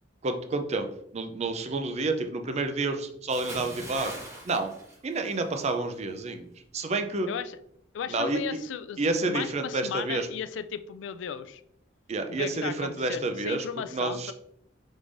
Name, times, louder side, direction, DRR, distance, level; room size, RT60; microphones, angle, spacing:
voice 1, 0.2-0.9 1.1-4.1 4.4-4.7 5.0-7.3 8.1-8.6 9.0-10.3 12.1-13.7 13.9-14.3, right 3 dB, 35° right, 7 dB, 0.5 m, -29 dB
Bathtub (filling or washing) / Splash splatter, 3.3-5.7 6.0-6.3, right 1 dB, 15° right, 1.0 m, -42 dB
voice 2, 7.3-7.6 7.9-9.0 9.3-11.6 12.3-14.3, left 8 dB, 75° left, 13 dB, 0.3 m, -35 dB
4.9 x 3.5 x 2.5 m, 0.72 s
head